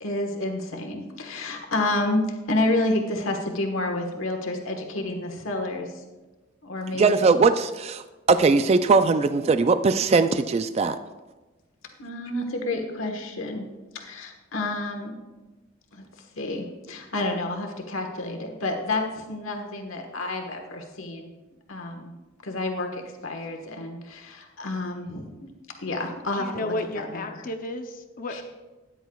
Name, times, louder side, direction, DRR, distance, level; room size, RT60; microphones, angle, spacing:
voice 1, 0.0-6.0 6.6-7.2 12.0-13.7 13.9-15.2 15.9-21.3 21.7-22.1 22.4-25.4 25.8-26.7 27.3-27.4 28.3-28.4, left 2 dB, 85° left, 3 dB, 1.3 m, -29 dB
voice 2, 6.9-11.0, right 4 dB, 30° right, 10 dB, 0.3 m, -20 dB
voice 3, 26.3-28.4, left 2 dB, 45° left, 5 dB, 0.6 m, -32 dB
13.5 x 10.0 x 2.3 m, 1.2 s
head